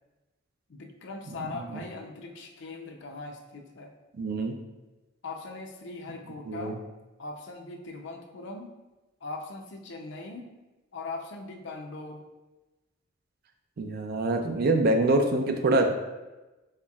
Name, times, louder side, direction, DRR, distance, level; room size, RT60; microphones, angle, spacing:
voice 1, 0.7-3.9 5.2-6.8 7.2-8.7 9.2-10.5 10.9-12.2, left 3 dB, 65° left, 2 dB, 0.6 m, -40 dB
voice 2, 4.2-4.5 6.5-6.8 13.8-15.9, right 2 dB, 50° right, 5 dB, 0.4 m, -25 dB
4.3 x 4.0 x 2.3 m, 1.1 s
head